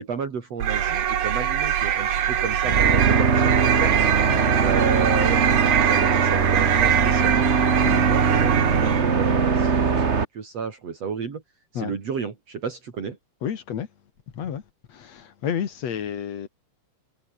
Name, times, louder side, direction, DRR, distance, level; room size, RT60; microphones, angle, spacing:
voice 1, 0.0-4.1 4.6-7.5 7.9-10.0 10.3-11.4 11.7-13.2, right 6 dB, 60° right, 4.2 m, -31 dB
sound 1, 0.6-9.2, right 9 dB, 85° right, 3.4 m, -23 dB
sound 2, 2.6-10.2, right 5 dB, 35° right, 1.2 m, -21 dB
voice 2, 13.4-13.9 14.3-14.6 14.9-16.5, left 8 dB, 65° left, 3.0 m, -30 dB
omnidirectional pair, 3.4 m